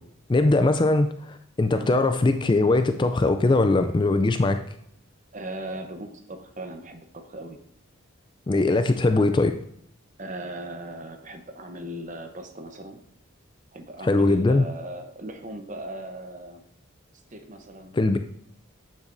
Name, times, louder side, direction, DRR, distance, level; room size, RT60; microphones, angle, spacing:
voice 1, 0.3-4.6 8.5-9.6 14.0-14.6 17.9-18.2, left 2 dB, 20° left, 8 dB, 0.3 m, -21 dB
voice 2, 5.3-7.6 10.2-13.0 13.7-16.6 17.3-18.2, right 1 dB, 35° right, 6 dB, 0.9 m, -38 dB
8.8 x 8.0 x 2.6 m, 0.71 s
head